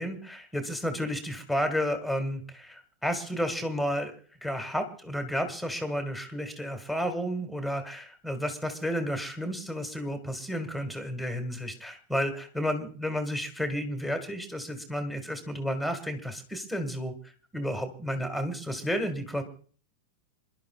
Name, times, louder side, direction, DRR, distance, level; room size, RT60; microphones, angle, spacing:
voice 1, 0.0-4.1 4.4-17.1 17.5-19.4, equal, ahead, 6 dB, 2.1 m, -32 dB
27.5 x 12.0 x 2.5 m, 0.43 s
figure-of-eight pair, 90°, 0 cm